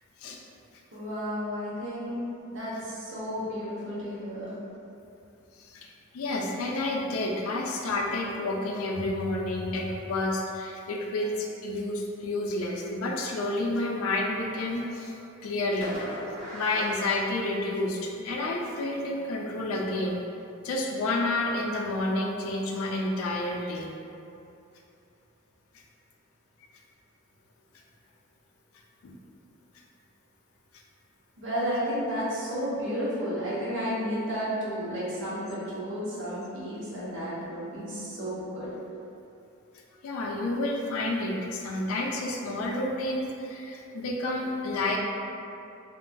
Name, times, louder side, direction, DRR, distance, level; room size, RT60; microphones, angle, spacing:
voice 1, 0.9-2.2 2.5-4.5 31.4-38.7, equal, 60° right, -9 dB, 0.9 m, -32 dB
voice 2, 5.6-15.2 15.4-16.0 16.5-20.2 20.6-23.9 29.0-29.2 40.0-45.0, left 2 dB, 70° left, 0 dB, 0.4 m, -30 dB
Fireworks, 14.2-15.2 15.8-18.0, equal, 30° right, 0.9 m, -41 dB
2.8 x 2.5 x 2.2 m, 2.6 s
head